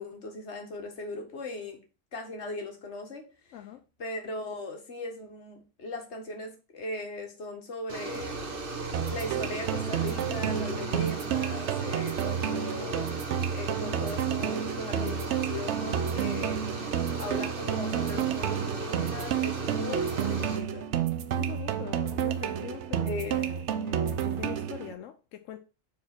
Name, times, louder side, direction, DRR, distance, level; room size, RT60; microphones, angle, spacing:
voice 1, 0.0-1.8 2.1-3.2 4.0-8.6 9.1-16.6 17.2-20.9 23.0-23.5, left 2 dB, 60° left, 1.8 m, -38 dB
voice 2, 3.5-3.8 21.3-25.6, left 10 dB, 85° left, 1.0 m, -43 dB
sound 1, 7.9-20.6, right 3 dB, 45° right, 1.4 m, -37 dB
sound 2, 8.1-12.5, right 1 dB, 85° right, 1.7 m, -51 dB
sound 3, 8.9-24.9, right 9 dB, 65° right, 0.9 m, -30 dB
4.8 x 4.3 x 6.0 m
omnidirectional pair, 1.3 m